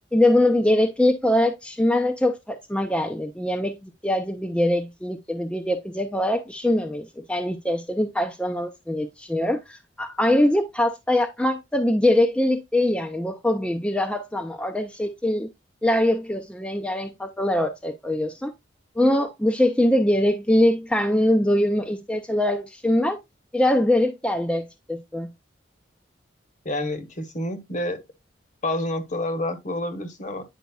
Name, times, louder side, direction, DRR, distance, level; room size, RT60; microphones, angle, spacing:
voice 1, 0.1-15.5 15.8-18.5 19.0-23.2 23.5-25.3, left 1 dB, 5° left, 0.4 m, -23 dB
voice 2, 26.6-28.0 28.6-30.4, left 1 dB, 40° left, 1.0 m, -28 dB
9.4 x 5.0 x 2.3 m
head